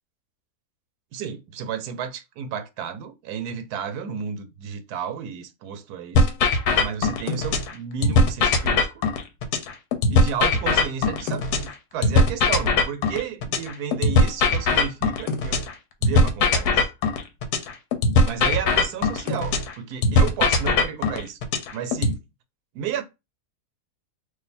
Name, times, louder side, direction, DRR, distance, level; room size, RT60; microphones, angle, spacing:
voice 1, 1.1-6.3 6.8-8.9 10.1-15.6 16.0-16.9 18.2-21.4 21.7-22.2 22.7-23.0, right 8 dB, 80° right, 1.1 m, -32 dB
sound 1, 6.1-7.7 8.0-11.7 12.0-15.7 16.0-19.7 20.0-22.1, left 2 dB, 90° left, 1.2 m, -20 dB
2.6 x 2.5 x 4.1 m
omnidirectional pair, 1.6 m